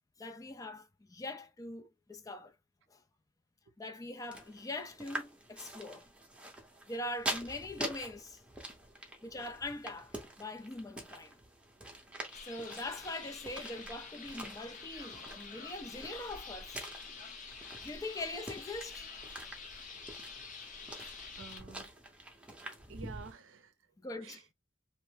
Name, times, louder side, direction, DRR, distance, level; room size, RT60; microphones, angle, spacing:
voice 1, 0.2-2.5 2.9-3.0 3.8-6.0 6.9-8.4 9.2-11.4 12.4-16.9 17.8-19.1 24.0-24.5, left 2 dB, 20° left, 0.4 m, -42 dB
sound 1, 4.3-23.3, right 1 dB, 5° right, 0.7 m, -46 dB
voice 2, 8.9-9.3 11.9-12.2 17.5-17.6 20.4-20.5 21.4-21.9 22.9-23.9 24.2-24.5, right 5 dB, 70° right, 0.5 m, -52 dB
sound 2, 12.3-21.6, left 4 dB, 40° left, 0.7 m, -47 dB
3.0 x 2.0 x 3.2 m
head